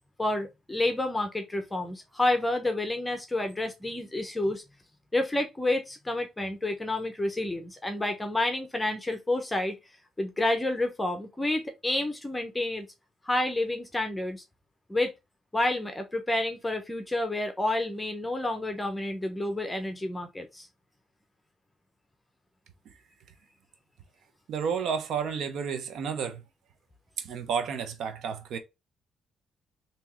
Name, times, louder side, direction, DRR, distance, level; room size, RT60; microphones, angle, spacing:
voice 1, 0.2-4.6 5.1-9.7 10.2-12.9 13.2-14.4 14.9-15.1 15.5-20.7, left 1 dB, 15° left, 0.8 m, -29 dB
voice 2, 24.5-26.4 27.2-28.6, right 6 dB, 75° right, 0.8 m, -31 dB
3.5 x 2.9 x 3.0 m
cardioid pair, 90°, 0 cm